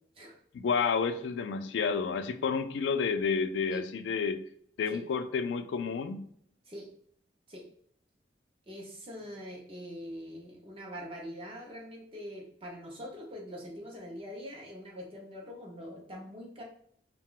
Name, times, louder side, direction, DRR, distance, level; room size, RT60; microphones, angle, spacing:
voice 1, 0.5-4.4 4.8-6.2, left 5 dB, 85° left, 9 dB, 0.3 m, -30 dB
voice 2, 8.7-16.6, equal, 30° right, -1 dB, 0.5 m, -43 dB
2.3 x 2.1 x 3.6 m, 0.65 s
head